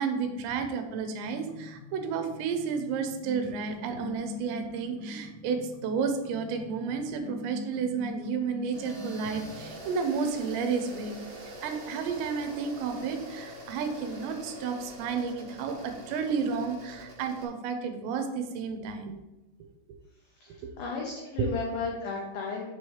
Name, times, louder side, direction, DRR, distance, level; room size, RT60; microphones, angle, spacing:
voice 1, 0.0-11.2 11.4-19.2 21.5-21.6, right 5 dB, 80° right, 6 dB, 2.8 m, -32 dB
sound 1, 1.2-9.7, left 4 dB, 30° left, 1.4 m, -43 dB
sound 2, 8.7-17.5, right 1 dB, 55° right, 1.9 m, -44 dB
voice 2, 20.4-22.7, left 4 dB, 85° left, -1 dB, 2.0 m, -34 dB
6.9 x 3.1 x 4.6 m, 0.97 s
omnidirectional pair, 5.3 m